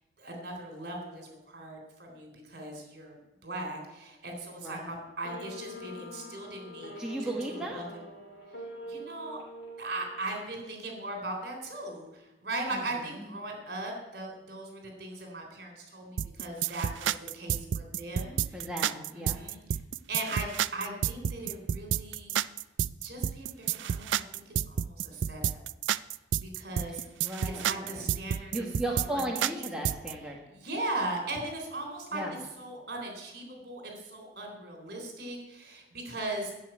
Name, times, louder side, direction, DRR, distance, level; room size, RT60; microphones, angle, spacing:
voice 1, 0.2-8.0 8.9-9.4 9.8-18.7 19.1-19.8 20.1-22.4 23.0-25.6 26.4-27.0 27.6-29.8 30.5-32.2 32.6-36.5, right 2 dB, 55° right, 3 dB, 3.7 m, -39 dB
voice 2, 4.6-4.9 7.0-7.8 12.7-12.8 13.1-13.3 18.5-19.4 27.2-28.1 28.5-30.4 32.1-32.3, right 1 dB, 5° right, -2 dB, 1.5 m, -35 dB
sound 1, 5.2-10.7, left 1 dB, 75° left, 4.1 m, -45 dB
sound 2, 16.2-30.1, right 9 dB, 80° right, 0.3 m, -30 dB
12.0 x 7.0 x 9.1 m, 0.98 s
head